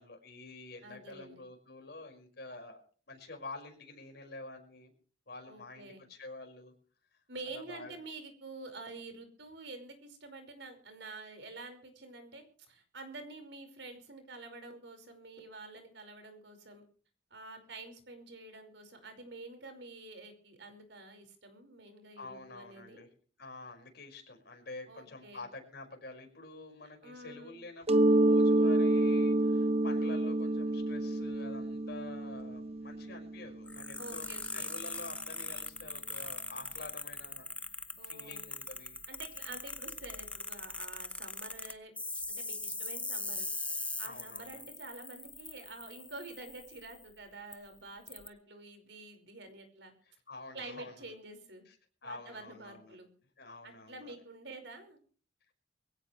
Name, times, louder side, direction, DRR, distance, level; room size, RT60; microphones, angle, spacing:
voice 1, 0.0-2.8 3.1-4.9 5.3-6.7 7.1-7.2 7.5-8.0 22.2-23.1 23.4-37.5 38.0-39.0 44.0-44.7 50.0-51.1 51.7-51.8 52.0-53.0 53.4-54.1, left 2 dB, 60° left, 3 dB, 5.6 m, -48 dB
voice 2, 0.8-1.4 5.5-6.0 7.3-16.8 17.3-23.0 24.9-25.5 27.0-27.6 34.0-34.7 38.0-38.5 39.1-43.5 44.0-49.9 50.5-51.6 52.0-53.1 53.6-55.0, right 2 dB, 75° right, 6 dB, 5.2 m, -48 dB
Mallet percussion, 27.9-33.4, right 1 dB, 35° right, 0.7 m, -28 dB
sound 1, 33.7-47.0 47.5-47.6 48.1-48.3, left 2 dB, 5° left, 0.9 m, -41 dB
22.5 x 16.5 x 3.3 m, 0.42 s
head